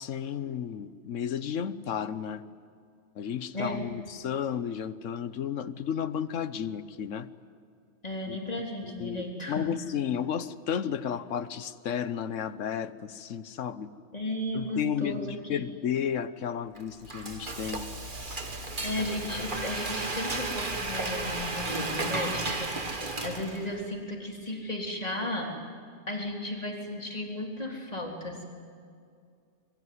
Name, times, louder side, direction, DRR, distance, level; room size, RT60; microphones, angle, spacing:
voice 1, 0.0-2.4 3.2-7.3 8.3-8.4 9.0-13.9 14.5-17.9, left 8 dB, 85° left, 14 dB, 1.2 m, -33 dB
voice 2, 3.5-4.1 8.0-9.7 14.1-15.6 18.3-18.4 18.8-25.5 26.1-28.4, left 1 dB, 30° left, 0 dB, 3.7 m, -35 dB
Frying (food), 16.8-23.8, right 2 dB, 40° right, 2.1 m, -34 dB
25.5 x 22.5 x 9.6 m, 2.3 s
omnidirectional pair, 1.3 m